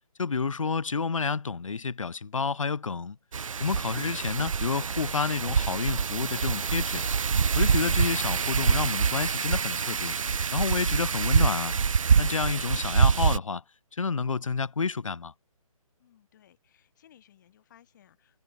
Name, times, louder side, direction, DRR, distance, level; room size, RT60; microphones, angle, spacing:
voice 1, 0.2-3.2 3.6-7.0 7.5-10.2 10.5-11.7 12.2-13.6 13.9-15.3, left 5 dB, 60° left, 1.2 m, -29 dB
Wind, 3.3-13.4, right 6 dB, 60° right, 0.4 m, -26 dB
voice 2, 16.0-18.4, left 11 dB, 30° left, 4.5 m, -60 dB
figure-of-eight pair, 145°, 19 cm